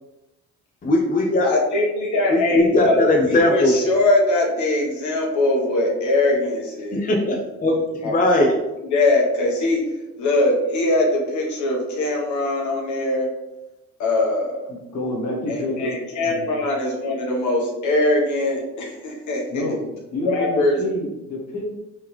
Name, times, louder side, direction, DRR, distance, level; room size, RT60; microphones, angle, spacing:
voice 1, 0.8-1.5 2.3-3.8 6.9-8.6, left 1 dB, 25° left, 1 dB, 0.6 m, -19 dB
voice 2, 1.4-3.1 3.5-7.2 8.0-8.4 8.8-9.8 10.2-13.3 14.0-14.7 15.5-19.7 20.2-20.8, left 2 dB, 75° left, -1 dB, 1.0 m, -22 dB
voice 3, 14.7-16.5 19.5-19.8 20.1-21.6, left 1 dB, 60° left, -3 dB, 1.4 m, -28 dB
3.5 x 3.4 x 3.0 m, 1.0 s
cardioid pair, 90°, 30 cm